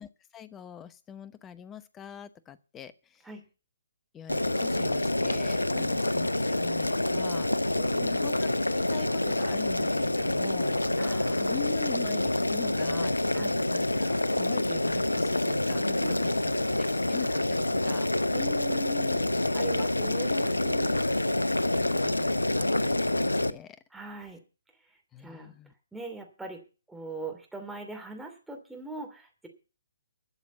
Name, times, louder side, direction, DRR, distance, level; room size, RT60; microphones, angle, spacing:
voice 1, 0.0-3.3 4.1-10.7 11.4-13.4 13.7-18.1 21.0-21.1 21.7-23.8 25.1-25.7, left 9 dB, 15° left, 15 dB, 0.9 m, -45 dB
Boiling, 4.3-23.5, left 1 dB, 85° left, 0.8 m, -27 dB
voice 2, 11.0-11.6 13.3-13.6 18.3-21.1 23.9-24.4 25.2-25.5 25.9-26.6 26.9-29.5, right 2 dB, 5° right, 2 dB, 2.8 m, -41 dB
12.5 x 7.2 x 8.1 m, 0.34 s
figure-of-eight pair, 135°, 0 cm